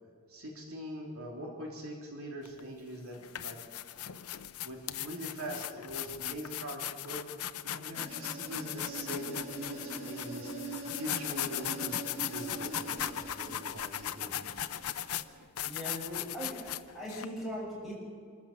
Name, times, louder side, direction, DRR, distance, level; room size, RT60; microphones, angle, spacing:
voice 1, 0.3-3.6 4.6-7.3 7.6-14.5, equal, 75° right, -1 dB, 3.4 m, -42 dB
sound 1, 2.4-2.6 3.1-17.2, left 11 dB, 80° left, 0.7 m, -38 dB
sound 2, 7.9-15.5, right 3 dB, 30° right, 3.8 m, -44 dB
voice 2, 15.7-18.0, equal, ahead, -5 dB, 6.8 m, -40 dB
26.0 x 14.0 x 7.3 m, 2.1 s
head